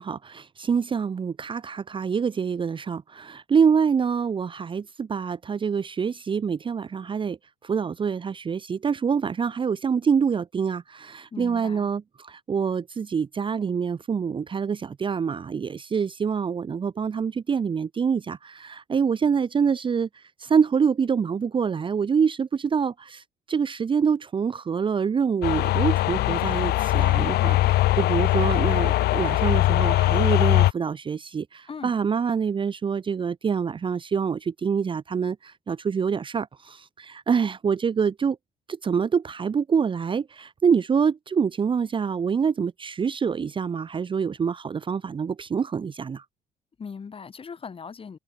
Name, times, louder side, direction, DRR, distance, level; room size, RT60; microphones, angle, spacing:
voice 1, 0.0-7.4 7.6-38.4 38.8-46.2, right 6 dB, 30° right, 0.9 m, -26 dB
voice 2, 11.3-11.9 31.7-31.9 46.8-48.2, left 6 dB, 35° left, 7.2 m, -39 dB
sound 1, 25.4-30.7, left 16 dB, 70° left, 0.8 m, -21 dB
cardioid pair, 110°, 17 cm